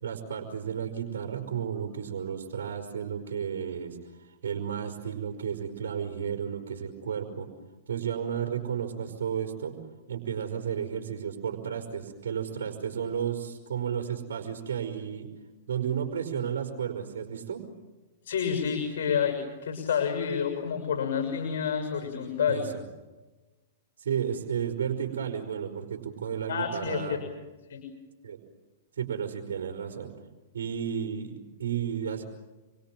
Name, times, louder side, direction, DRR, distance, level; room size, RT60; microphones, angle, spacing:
voice 1, 0.0-7.5 7.9-9.7 10.1-15.3 15.7-17.6 22.5-22.7 24.0-27.2 28.2-28.4 28.9-30.1 30.5-32.2, right 8 dB, 75° right, 3 dB, 4.8 m, -33 dB
voice 2, 18.2-22.7 26.5-27.2 27.7-27.8, left 7 dB, 65° left, 4 dB, 6.5 m, -29 dB
29.0 x 24.0 x 7.6 m, 1.2 s
hypercardioid pair, 120°, 0 cm